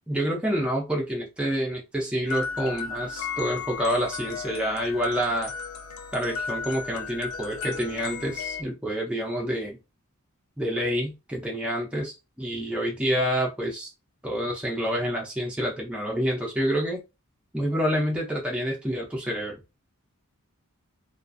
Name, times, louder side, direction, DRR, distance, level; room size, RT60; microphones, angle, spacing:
voice 1, 0.1-5.5 6.1-9.8 10.6-13.9 14.2-17.0 17.5-19.6, equal, 5° right, -1 dB, 0.4 m, -28 dB
sound 1, 2.3-8.6, left 6 dB, 65° left, 0.4 m, -34 dB
2.4 x 2.3 x 2.5 m, 0.25 s
head